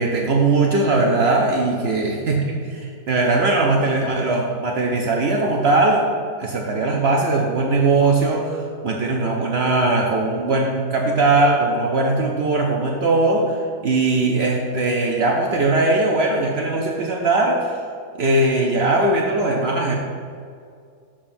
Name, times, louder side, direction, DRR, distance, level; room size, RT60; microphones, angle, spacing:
voice 1, 0.0-6.1 6.4-17.7 18.2-19.9, right 2 dB, 70° right, 0 dB, 0.6 m, -20 dB
7.2 x 6.8 x 2.6 m, 2.3 s
omnidirectional pair, 1.7 m